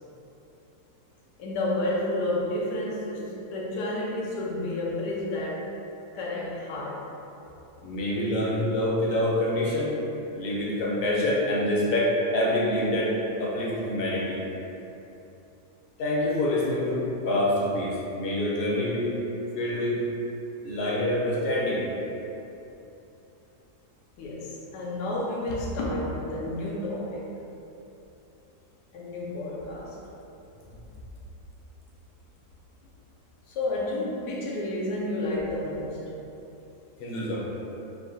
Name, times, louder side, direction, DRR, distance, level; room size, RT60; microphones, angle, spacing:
voice 1, 1.4-5.7 6.1-7.1 24.2-27.3 28.9-30.0 33.5-36.0, left 1 dB, 85° left, -4 dB, 1.2 m, -30 dB
voice 2, 7.8-9.9 10.3-13.1 13.4-14.4 16.0-19.1 19.5-20.0 20.6-21.9 37.0-37.4, left 1 dB, 50° left, -4 dB, 0.7 m, -26 dB
4.8 x 2.2 x 3.9 m, 3.0 s
omnidirectional pair, 1.8 m